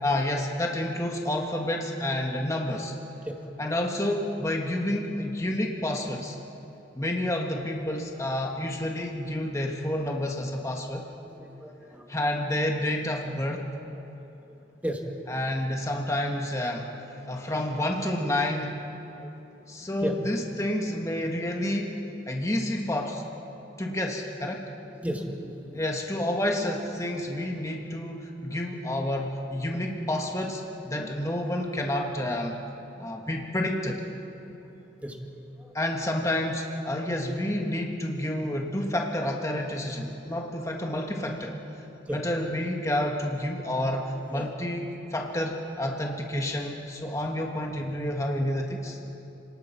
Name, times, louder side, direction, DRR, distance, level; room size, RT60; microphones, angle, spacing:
voice 1, 0.0-2.9 3.6-6.4 6.9-11.1 12.1-13.7 15.3-18.8 19.7-22.0 22.3-23.2 23.8-24.7 25.7-32.6 33.0-34.0 35.7-41.6 42.1-49.0, left 1 dB, 15° left, 1 dB, 1.5 m, -29 dB
voice 2, 11.3-12.1 14.8-15.0 15.4-15.5 19.2-19.3 20.0-20.2 20.7-20.8 25.0-25.8 31.0-31.1 33.0-33.1 34.4-34.5 35.0-35.2 42.1-42.2 44.3-44.5, equal, 10° right, 1 dB, 2.2 m, -34 dB
30.0 x 19.5 x 5.8 m, 2.9 s
head